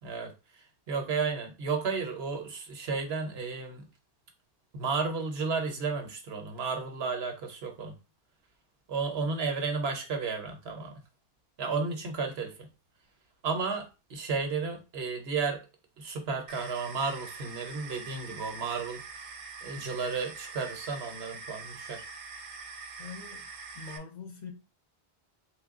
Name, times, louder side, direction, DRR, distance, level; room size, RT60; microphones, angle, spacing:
voice 1, 0.0-3.9 4.7-8.0 8.9-11.0 11.6-12.7 13.4-15.6 16.0-19.2 19.6-22.0, right 4 dB, 80° right, 1.1 m, -33 dB
sound 1, 16.5-24.0, right 4 dB, 55° right, 0.6 m, -44 dB
voice 2, 23.0-23.5 23.7-24.5, left 5 dB, 50° left, 0.7 m, -43 dB
3.3 x 2.3 x 3.6 m
omnidirectional pair, 1.0 m